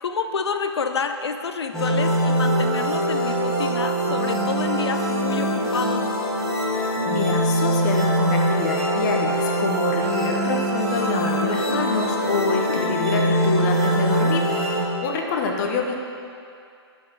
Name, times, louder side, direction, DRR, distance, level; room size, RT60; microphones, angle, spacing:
voice 1, 0.0-6.1 12.5-12.9, left 5 dB, 75° left, 8 dB, 0.6 m, -28 dB
sound 1, 1.7-14.8, equal, 5° left, 2.1 m, -23 dB
voice 2, 6.7-15.9, left 4 dB, 40° left, 2 dB, 1.0 m, -27 dB
9.2 x 5.6 x 4.6 m, 2.5 s
figure-of-eight pair, 125°, 14 cm